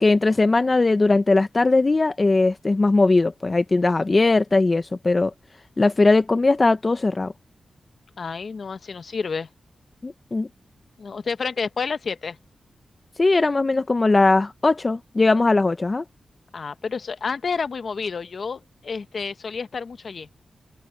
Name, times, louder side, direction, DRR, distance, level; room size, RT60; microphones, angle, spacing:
voice 1, 0.0-5.3 5.8-7.3 10.0-10.5 13.2-16.0, left 3 dB, 35° left, 0.6 m, -19 dB
voice 2, 8.2-9.5 11.0-12.4 16.5-20.3, left 5 dB, 60° left, 1.1 m, -30 dB
open air
wide cardioid pair, 90°, 0 cm